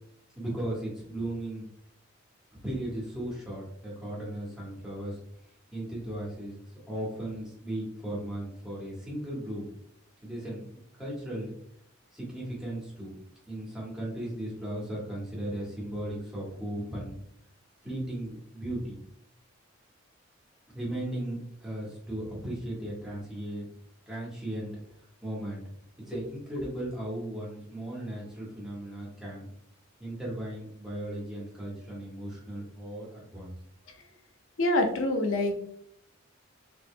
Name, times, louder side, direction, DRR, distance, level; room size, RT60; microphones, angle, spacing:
voice 1, 0.3-1.7 2.6-5.2 5.7-9.7 10.2-10.6 11.0-11.5 12.1-13.1 13.5-17.2 17.8-19.0 20.7-23.6 24.1-24.7 25.2-25.6 26.1-29.5 30.0-33.5, right 1 dB, 5° right, -6 dB, 1.4 m, -36 dB
voice 2, 34.6-35.5, left 1 dB, 70° left, 4 dB, 0.7 m, -26 dB
3.9 x 3.5 x 2.2 m, 0.69 s
head